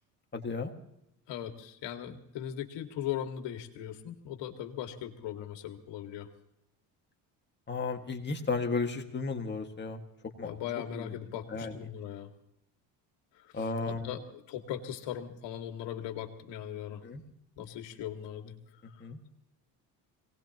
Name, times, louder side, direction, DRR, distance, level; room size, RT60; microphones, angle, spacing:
voice 1, 0.3-0.7 7.7-10.0 10.4-10.5 10.9-11.2 11.5-11.9 13.5-14.2 17.0-17.2 19.0-19.2, left 4 dB, 25° left, 3 dB, 1.9 m, -34 dB
voice 2, 1.3-6.3 10.4-12.3 13.5-17.0 17.6-18.5, left 10 dB, 75° left, 4 dB, 2.2 m, -39 dB
23.5 x 18.5 x 3.0 m, 0.80 s
cardioid pair, 115°, 43 cm